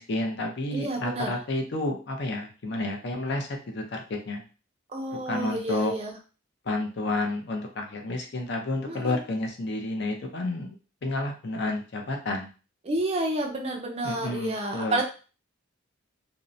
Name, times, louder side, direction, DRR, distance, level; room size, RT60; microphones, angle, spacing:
voice 1, 0.0-4.4 5.3-5.9 6.6-10.7 11.0-12.5 14.0-15.0, left 2 dB, 55° left, 3 dB, 0.5 m, -30 dB
voice 2, 0.7-1.4 4.9-6.2 8.9-9.2 12.8-15.0, right 1 dB, 30° right, 1 dB, 0.4 m, -30 dB
2.6 x 2.0 x 2.5 m, 0.35 s
head